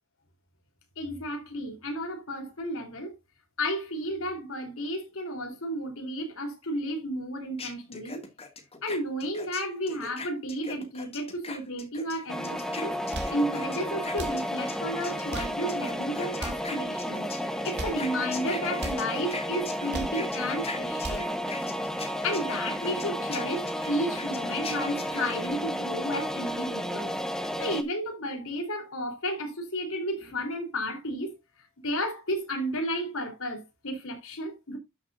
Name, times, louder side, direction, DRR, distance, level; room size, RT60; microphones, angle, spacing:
voice 1, 1.0-3.2 3.6-8.2 8.8-13.0 13.3-21.3 22.2-27.2 27.6-34.8, equal, 65° left, 3.5 m, -32 dB
sound 1, 7.6-14.8 15.0-25.5, left 4 dB, 30° left, 2.1 m, -41 dB
sound 2, 12.3-27.8, equal, ahead, 1.1 m, -32 dB
sound 3, 13.0-13.4 14.1-14.4 15.1-15.6 16.3-16.7 17.6-18.1 18.7-19.1 19.7-20.2 20.8-21.3, right 2 dB, 50° right, 2.2 m, -38 dB
13.0 x 6.7 x 2.5 m
head